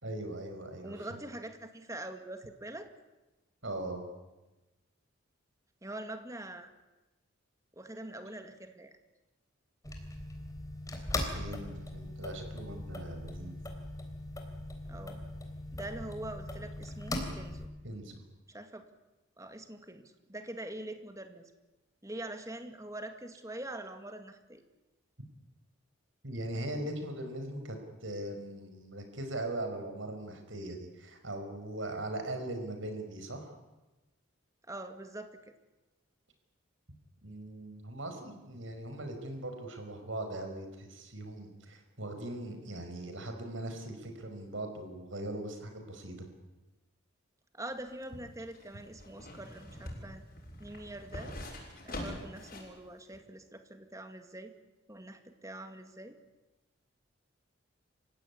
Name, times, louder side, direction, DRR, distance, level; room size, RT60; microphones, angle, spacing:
voice 1, 0.0-1.2 3.6-4.1 11.3-13.6 17.8-18.2 26.2-33.5 37.2-46.3, right 1 dB, 70° right, 6 dB, 5.2 m, -40 dB
voice 2, 0.8-2.9 5.8-6.7 7.7-8.9 14.9-15.2 15.7-17.7 18.5-18.9 19.4-21.5 22.0-24.6 34.6-35.3 47.5-50.2 50.6-51.4 51.8-54.5 54.9-56.2, right 1 dB, 15° right, 7 dB, 2.0 m, -44 dB
sound 1, 9.8-17.7, left 1 dB, 15° left, 3.6 m, -40 dB
sound 2, 47.7-52.8 53.1-53.2, left 1 dB, 45° left, 6.7 m, -44 dB
27.5 x 16.0 x 9.9 m, 1.1 s
head